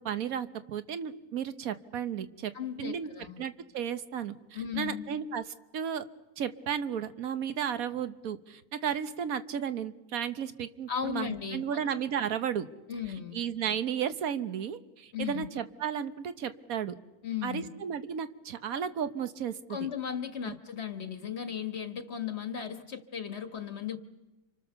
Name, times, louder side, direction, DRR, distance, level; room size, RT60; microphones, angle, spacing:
voice 1, 0.0-2.5 2.8-3.1 3.4-6.0 6.4-12.7 13.3-16.9 17.4-19.8 20.4-20.5, right 8 dB, 60° right, 11 dB, 1.4 m, -34 dB
voice 2, 2.5-3.4 4.5-5.1 10.9-11.8 12.9-13.4 15.1-15.5 17.2-17.7 19.7-24.0, left 8 dB, 40° left, 8 dB, 1.6 m, -36 dB
30.0 x 26.5 x 6.9 m, 1.1 s
omnidirectional pair, 1.8 m